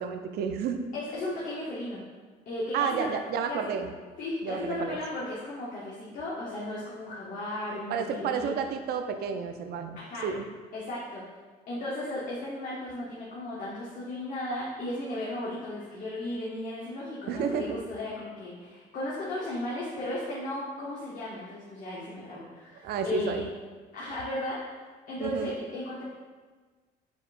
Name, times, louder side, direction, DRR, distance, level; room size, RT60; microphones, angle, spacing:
voice 1, 0.0-0.9 2.7-3.9 4.4-5.0 7.9-10.4 17.3-17.8 22.8-23.4 25.2-25.6, right 6 dB, 70° right, 6 dB, 0.5 m, -31 dB
voice 2, 0.9-2.0 2.5-3.1 3.5-3.6 4.2-8.5 10.0-10.3 10.7-11.2 11.7-23.5 23.9-26.0, left 1 dB, 50° left, -7 dB, 1.0 m, -35 dB
4.9 x 4.0 x 2.5 m, 1.4 s
cardioid pair, 110°, 17 cm